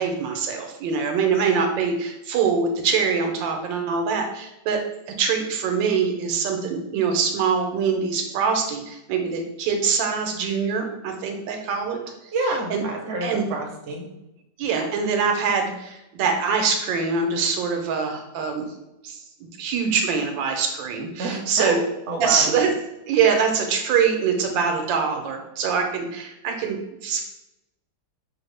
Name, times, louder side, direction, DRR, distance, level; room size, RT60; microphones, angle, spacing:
voice 1, 0.0-12.0 12.7-12.8 13.2-13.4 14.6-18.7 19.0-21.8 22.2-22.7 23.1-27.2, right 5 dB, 90° right, 4 dB, 1.3 m, -24 dB
voice 2, 12.3-14.1 21.2-21.8 22.1-22.5, right 3 dB, 60° right, 1 dB, 0.7 m, -27 dB
5.3 x 2.1 x 3.2 m, 0.92 s
omnidirectional pair, 2.0 m